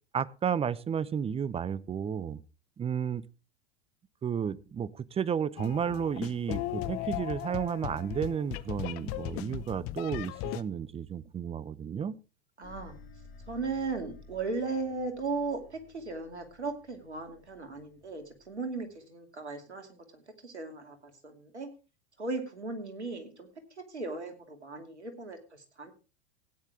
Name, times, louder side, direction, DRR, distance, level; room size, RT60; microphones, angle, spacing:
voice 1, 0.1-2.4 2.8-3.2 4.2-12.2, right 7 dB, 20° right, 0.7 m, -32 dB
sound 1, 5.6-10.6, left 17 dB, 45° left, 0.7 m, -37 dB
sound 2, 12.6-19.0, left 3 dB, 25° left, 7.5 m, -55 dB
voice 2, 12.6-13.0 13.5-21.7 22.2-25.9, right 3 dB, 90° right, 2.6 m, -37 dB
16.5 x 9.9 x 3.5 m
hypercardioid pair, 90°, 33 cm